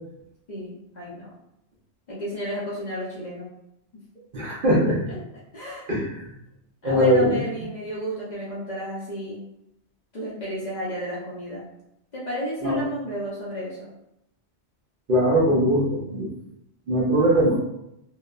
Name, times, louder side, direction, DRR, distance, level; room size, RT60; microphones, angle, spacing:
voice 1, 0.5-1.3 2.1-3.5 5.1-5.2 5.5-5.9 6.8-9.4 10.1-11.6 12.1-13.9, equal, 45° left, -7 dB, 0.6 m, -32 dB
voice 2, 4.3-5.0 5.9-6.3 6.8-7.4 12.6-12.8 15.1-16.3 16.9-17.6, equal, 55° right, -5 dB, 0.7 m, -21 dB
2.8 x 2.0 x 2.3 m, 0.83 s
omnidirectional pair, 1.2 m